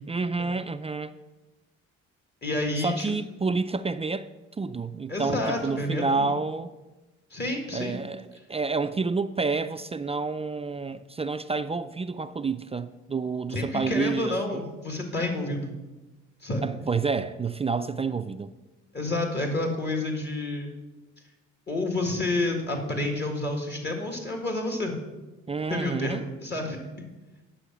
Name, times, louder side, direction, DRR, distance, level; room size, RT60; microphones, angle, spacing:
voice 1, 0.1-1.1 2.8-4.3 4.6-6.7 7.7-8.2 8.5-14.6 16.6-18.5 25.5-26.2, right 4 dB, 20° right, 0.4 m, -29 dB
voice 2, 2.4-3.1 5.1-6.4 7.3-8.0 13.5-15.8 16.4-16.6 18.9-20.7 21.7-24.9 25.7-26.8, left 2 dB, 35° left, 1.8 m, -29 dB
9.9 x 5.7 x 5.9 m
cardioid pair, 80°, 29 cm